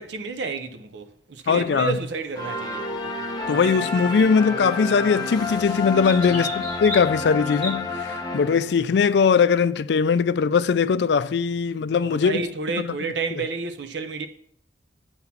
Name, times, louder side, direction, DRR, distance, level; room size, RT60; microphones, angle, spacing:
voice 1, 0.0-2.8 6.3-6.6 12.1-14.3, right 4 dB, 70° right, 0.6 m, -30 dB
voice 2, 1.5-2.0 3.5-12.4, left 6 dB, 65° left, 0.4 m, -20 dB
sound 1, 1.6-7.7, equal, 30° right, 1.8 m, -39 dB
sound 2, 2.4-8.9, left 3 dB, 25° left, 1.1 m, -30 dB
9.6 x 4.2 x 5.7 m
head